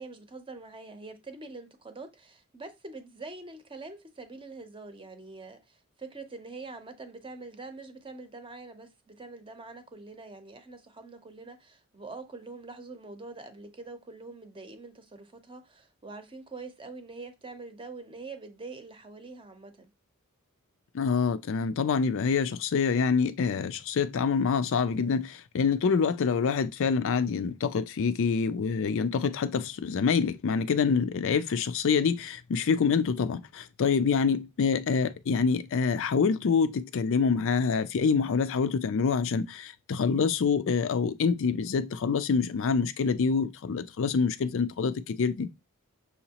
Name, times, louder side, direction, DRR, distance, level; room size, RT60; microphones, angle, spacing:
voice 1, 0.0-19.9, right 3 dB, 25° right, 0.7 m, -44 dB
voice 2, 20.9-45.5, left 5 dB, 60° left, 0.4 m, -26 dB
6.3 x 2.9 x 2.9 m
head